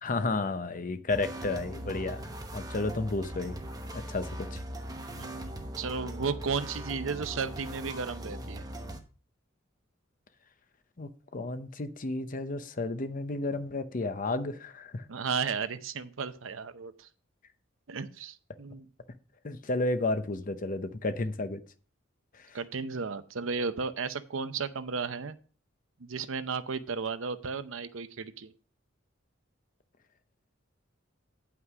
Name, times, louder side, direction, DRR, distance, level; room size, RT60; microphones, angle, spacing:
voice 1, 0.0-3.6 3.9-4.6 11.0-15.1 19.4-21.6 22.3-22.6, left 2 dB, 45° left, 0.8 m, -32 dB
sound 1, 1.1-9.0, right 1 dB, 20° right, 1.0 m, -40 dB
voice 2, 5.1-8.6 15.1-17.1 17.9-18.9 22.5-25.4 26.0-28.5, right 5 dB, 80° right, 0.7 m, -34 dB
9.5 x 5.9 x 4.8 m
head